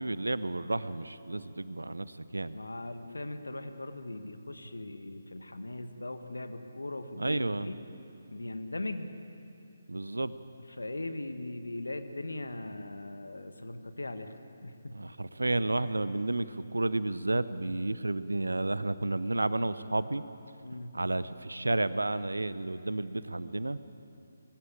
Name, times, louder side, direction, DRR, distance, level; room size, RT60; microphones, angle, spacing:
voice 1, 0.0-2.1 2.3-2.6 7.2-7.7 9.9-10.4 14.9-20.2 20.9-23.8, right 2 dB, 75° right, 15 dB, 0.8 m, -31 dB
voice 2, 2.5-7.8 8.3-9.1 10.7-14.3 14.6-15.0 20.6-21.0, left 2 dB, 75° left, 8 dB, 1.5 m, -39 dB
20.5 x 15.0 x 8.8 m, 2.7 s
figure-of-eight pair, 145°, 0 cm